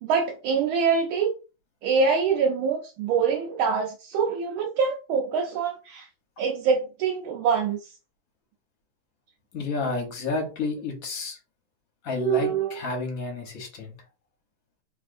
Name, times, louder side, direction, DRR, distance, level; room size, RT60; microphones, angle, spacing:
voice 1, 0.0-1.4 1.8-6.1 6.4-7.9 12.2-12.8, right 6 dB, 75° right, 1.4 m, -25 dB
voice 2, 9.5-11.4 12.0-14.0, left 3 dB, 50° left, 1.3 m, -30 dB
3.4 x 3.1 x 2.5 m
omnidirectional pair, 2.4 m